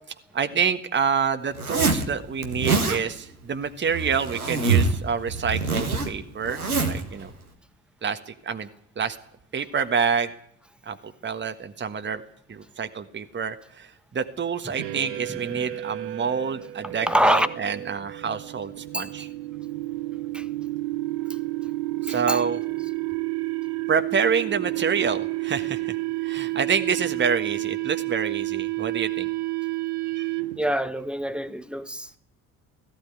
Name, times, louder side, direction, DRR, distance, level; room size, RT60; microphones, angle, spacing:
voice 1, 0.3-7.3 8.0-8.7 9.0-9.2 9.5-10.3 10.9-12.2 12.5-19.3 22.0-22.6 23.9-25.9 26.2-29.3 30.1-30.3, right 6 dB, 25° right, 1.5 m, -27 dB
Zipper (clothing), 1.5-2.1 2.4-3.0 3.8-5.0 5.3-7.0, right 4 dB, 85° right, 1.8 m, -24 dB
sound 1, 14.8-30.7, right 20 dB, 60° right, 1.0 m, -30 dB
voice 2, 15.3-15.6 16.8-17.5 18.9-19.1 20.3-20.5 22.1-22.4 27.0-27.1 30.5-32.2, equal, ahead, 1.4 m, -26 dB
18.0 x 15.0 x 9.6 m
figure-of-eight pair, 50°, 43 cm